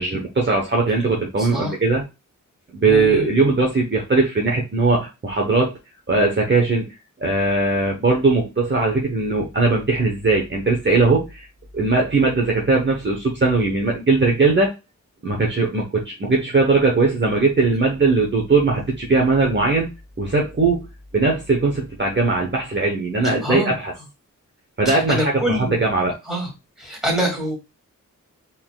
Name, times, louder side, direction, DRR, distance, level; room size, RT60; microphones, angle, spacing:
voice 1, 0.0-2.0 2.7-5.7 6.1-6.9 7.2-11.5 11.7-14.7 15.2-19.9 20.2-20.8 21.1-23.9 24.8-26.1, right 3 dB, 35° right, -1 dB, 1.0 m, -19 dB
voice 2, 1.4-1.7 2.9-3.3 23.4-23.7 24.9-25.8 26.3-26.5 26.8-27.5, equal, ahead, -2 dB, 2.3 m, -25 dB
4.2 x 3.8 x 2.4 m, 0.25 s
wide cardioid pair, 90°, 32 cm